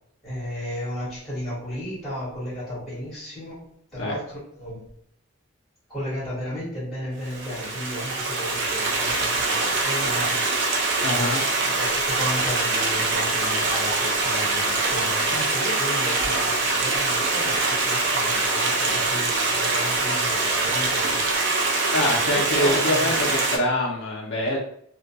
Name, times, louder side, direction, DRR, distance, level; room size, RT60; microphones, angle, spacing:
voice 1, 0.2-3.7 3.9-4.8 5.9-10.5 11.1-21.2 22.5-23.1, equal, ahead, -9 dB, 1.1 m, -34 dB
Stream, 7.3-23.6, right 3 dB, 55° right, 0.4 m, -24 dB
voice 2, 11.0-11.4 21.9-24.6, left 1 dB, 55° left, -3 dB, 0.4 m, -25 dB
2.2 x 2.1 x 2.7 m, 0.68 s
head